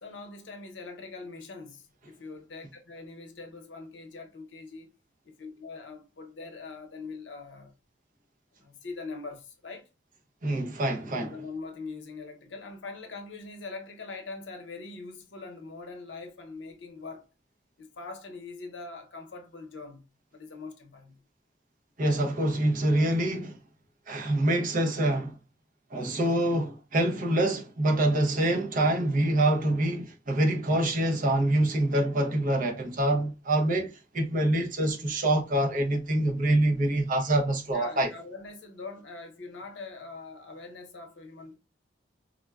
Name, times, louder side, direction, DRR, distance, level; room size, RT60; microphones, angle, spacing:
voice 1, 0.0-4.9 5.2-7.7 8.6-9.9 11.2-17.2 17.8-21.2 37.7-41.5, left 3 dB, 75° left, 0.7 m, -42 dB
voice 2, 10.4-11.3 22.0-23.6 24.1-25.4 25.9-38.1, right 1 dB, 45° right, 0.6 m, -25 dB
3.6 x 2.2 x 2.3 m
head